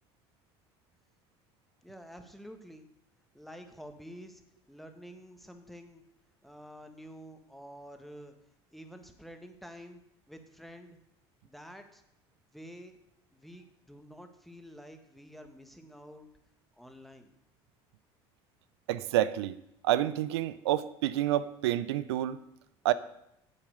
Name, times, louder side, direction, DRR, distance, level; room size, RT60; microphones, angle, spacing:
voice 1, 1.8-2.9 3.3-4.4 4.7-6.0 6.4-8.3 8.7-10.0 10.3-11.0 11.4-12.0 12.5-13.0 13.3-16.3 16.8-17.3, equal, ahead, 6 dB, 1.6 m, -49 dB
voice 2, 18.9-19.6 19.8-22.4 22.8-22.9, right 13 dB, 85° right, 15 dB, 0.5 m, -28 dB
8.8 x 7.6 x 6.5 m, 0.80 s
hypercardioid pair, 75°, 13 cm